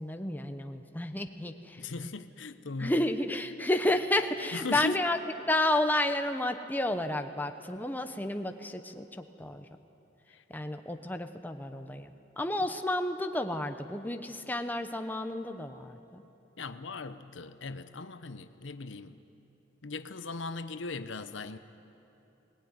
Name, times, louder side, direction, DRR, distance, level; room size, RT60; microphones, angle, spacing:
voice 1, 0.0-1.8 2.8-5.2 5.5-9.0 9.4-9.6 10.5-16.2, left 1 dB, 10° left, 6 dB, 0.9 m, -31 dB
voice 2, 1.8-3.1 4.5-5.0 10.3-10.4 16.6-19.2 19.8-21.6, left 3 dB, 85° left, 11 dB, 0.9 m, -38 dB
20.5 x 19.0 x 9.6 m, 3.0 s
head